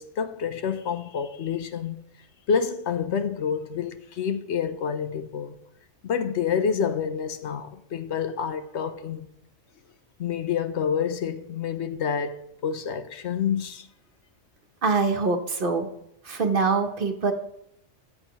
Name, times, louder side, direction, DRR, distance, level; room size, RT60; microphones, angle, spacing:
voice 1, 0.0-2.0 2.5-5.6 6.0-9.3 10.2-13.9, left 7 dB, 70° left, 1.0 m, -28 dB
voice 2, 14.8-15.9 16.2-17.3, right 4 dB, 50° right, 1.0 m, -24 dB
13.0 x 7.6 x 3.0 m
omnidirectional pair, 1.2 m